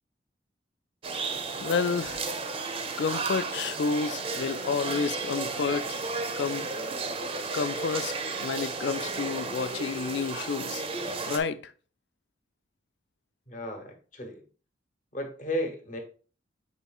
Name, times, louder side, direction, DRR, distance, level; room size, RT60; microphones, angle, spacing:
sound 1, 1.0-11.4, right 3 dB, 30° right, 0.5 m, -33 dB
voice 1, 1.6-2.2 3.0-6.0 6.4-6.7 7.5-8.1 8.4-10.8 11.3-11.7, left 5 dB, 70° left, 0.4 m, -30 dB
voice 2, 13.5-14.4 15.1-16.0, equal, 45° left, 0.9 m, -34 dB
5.4 x 4.0 x 2.3 m
head